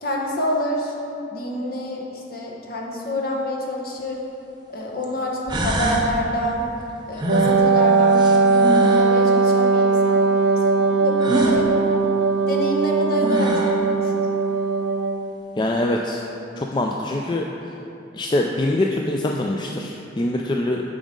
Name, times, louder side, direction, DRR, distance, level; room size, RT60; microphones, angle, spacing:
voice 1, 0.0-4.2 4.7-6.7 7.1-12.0 12.4-14.1, equal, 55° left, -2 dB, 1.0 m, -27 dB
sound 1, 4.0-4.1 5.0-5.1 5.5-6.1 7.2-9.1 11.2-11.6 12.8-12.9 13.2-13.8, right 1 dB, 25° right, 0.6 m, -26 dB
Wind instrument woodwind instrument, 7.3-15.4, right 4 dB, 80° right, 0.4 m, -19 dB
voice 2, 15.6-16.2 16.6-17.5 18.1-20.8, left 1 dB, 25° left, 0 dB, 0.3 m, -24 dB
8.9 x 5.0 x 3.7 m, 2.8 s
head